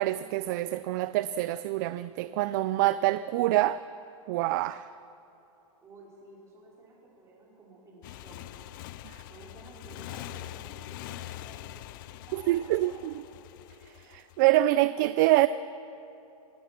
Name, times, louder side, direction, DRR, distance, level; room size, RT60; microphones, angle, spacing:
voice 1, 0.0-3.8 4.3-4.9 9.1-9.2 12.3-13.1 14.1-15.5, right 16 dB, 35° right, 14 dB, 0.4 m, -26 dB
voice 2, 5.8-8.8 9.2-13.1, right 2 dB, 15° right, -3 dB, 4.9 m, -52 dB
Motorcycle, 8.0-14.4, left 15 dB, 35° left, 0.4 m, -44 dB
24.5 x 18.5 x 6.0 m, 2.9 s
supercardioid pair, 160°, 19 cm